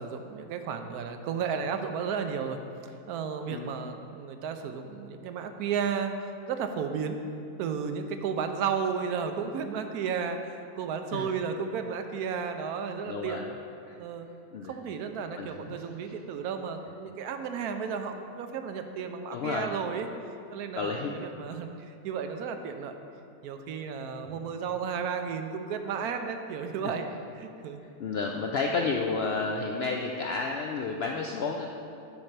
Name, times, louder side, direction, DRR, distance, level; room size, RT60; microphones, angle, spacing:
voice 1, 0.0-6.1 6.5-7.2 7.6-13.4 14.0-14.3 14.6-20.1 20.5-23.0 23.4-27.8, right 6 dB, 85° right, 7 dB, 1.1 m, -33 dB
voice 2, 13.1-13.5 13.9-14.0 14.5-14.7 15.4-15.8 19.3-19.7 20.7-21.2 26.8-26.9 28.0-31.7, left 4 dB, 75° left, 2 dB, 0.5 m, -31 dB
7.1 x 4.4 x 6.6 m, 2.6 s
omnidirectional pair, 1.6 m